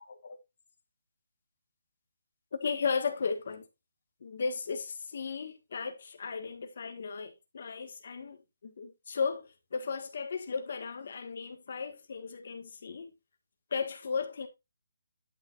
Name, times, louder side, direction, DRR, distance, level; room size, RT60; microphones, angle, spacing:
voice 1, 2.5-3.6 4.2-13.1 13.7-14.5, left 5 dB, 40° left, 1.7 m, -35 dB
11.0 x 6.7 x 2.5 m
hypercardioid pair, 175°, 0 cm